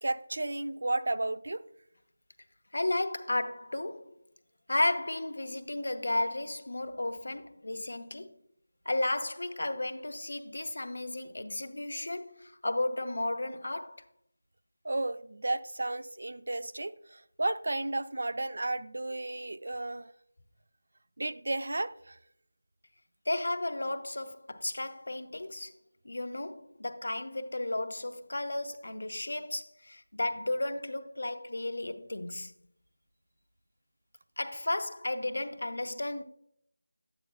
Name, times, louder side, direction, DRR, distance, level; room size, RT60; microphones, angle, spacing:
voice 1, 0.0-1.6 14.8-20.1 21.2-22.2, right 2 dB, 60° right, 0.4 m, -33 dB
voice 2, 2.7-4.1 4.7-8.3 8.9-14.0 23.3-25.7 26.0-32.5 34.4-36.2, left 2 dB, 70° left, 0.6 m, -33 dB
9.0 x 8.7 x 2.3 m
figure-of-eight pair, 175°, 0 cm